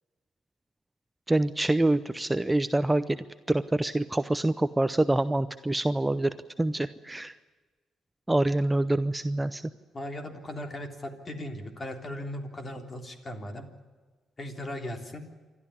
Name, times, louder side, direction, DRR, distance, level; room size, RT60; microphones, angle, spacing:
voice 1, 1.3-3.2 3.5-7.4 8.3-9.6, right 1 dB, 10° right, 12 dB, 0.7 m, -26 dB
voice 2, 9.9-13.6 14.4-15.2, left 1 dB, 30° left, 6 dB, 3.4 m, -38 dB
28.5 x 12.5 x 9.9 m, 1.4 s
cardioid pair, 90°, 0 cm